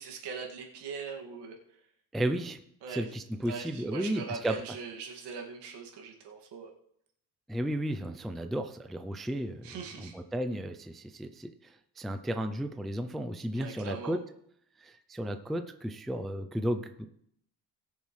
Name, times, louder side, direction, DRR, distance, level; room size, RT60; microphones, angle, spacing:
voice 1, 0.0-1.6 2.8-3.0 3.4-6.7 9.6-10.1 13.5-14.2, right 5 dB, 85° right, 1 dB, 2.2 m, -41 dB
voice 2, 2.1-2.6 2.9-4.6 7.5-14.2 14.8-17.1, right 1 dB, ahead, 7 dB, 0.3 m, -34 dB
20.0 x 6.9 x 3.2 m, 0.72 s
cardioid pair, 170°, 40 cm